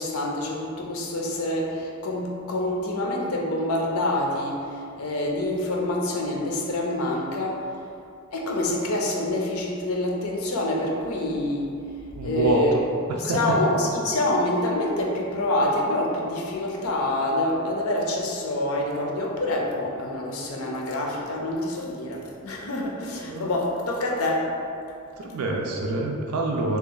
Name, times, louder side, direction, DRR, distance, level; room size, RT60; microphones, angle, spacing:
voice 1, 0.0-7.7 8.3-11.8 12.2-12.7 13.2-24.6, left 1 dB, 70° left, 0 dB, 0.5 m, -26 dB
voice 2, 12.2-12.8 13.2-13.6 23.2-23.5 25.2-26.8, right 2 dB, 80° right, 0 dB, 0.4 m, -26 dB
2.9 x 2.4 x 3.9 m, 2.5 s
head